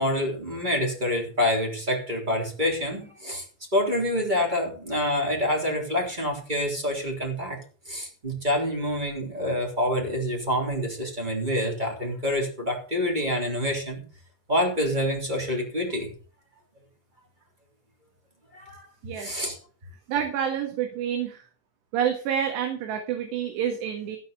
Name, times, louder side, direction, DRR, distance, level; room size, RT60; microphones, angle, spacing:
voice 1, 0.0-3.4 3.7-7.6 7.9-14.0 14.5-16.1 18.5-18.9 19.2-19.6, left 1 dB, 10° right, 1 dB, 2.9 m, -27 dB
voice 2, 19.0-19.4 20.1-21.5 21.9-24.2, right 9 dB, 70° right, 4 dB, 3.7 m, -28 dB
16.0 x 5.5 x 6.7 m, 0.40 s
omnidirectional pair, 5.3 m